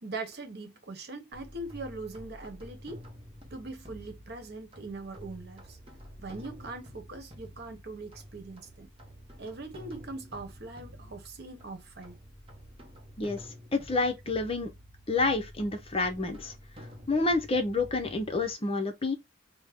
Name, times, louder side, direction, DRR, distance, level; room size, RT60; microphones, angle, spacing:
voice 1, 0.0-3.0 3.5-5.8 6.2-8.9 9.4-12.2, right 3 dB, 50° right, 1.0 m, -41 dB
sound 1, 1.3-18.5, equal, 30° right, 0.9 m, -49 dB
voice 2, 13.7-14.7 15.1-16.5 17.1-19.1, left 3 dB, 30° left, 0.6 m, -28 dB
5.1 x 2.0 x 3.5 m
head